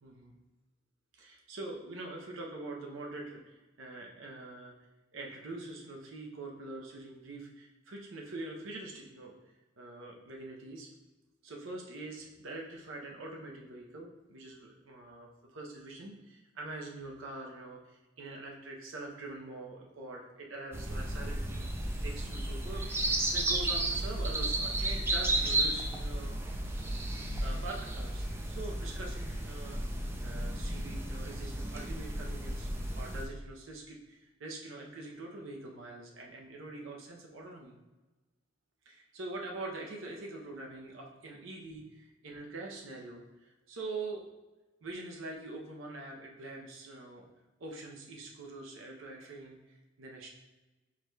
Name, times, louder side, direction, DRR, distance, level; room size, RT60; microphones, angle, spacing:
voice 1, 0.0-0.3 1.1-4.7 5.1-9.4 9.8-10.9 11.4-26.3 26.6-27.0 27.4-29.8 30.2-32.7 32.9-37.7 38.9-41.8 42.2-44.2 44.8-47.3 47.6-50.3, right 2 dB, 85° right, 0 dB, 0.7 m, -44 dB
sound 1, 20.7-33.2, right 1 dB, 10° right, 0.4 m, -33 dB
4.7 x 2.3 x 4.6 m, 1.1 s
head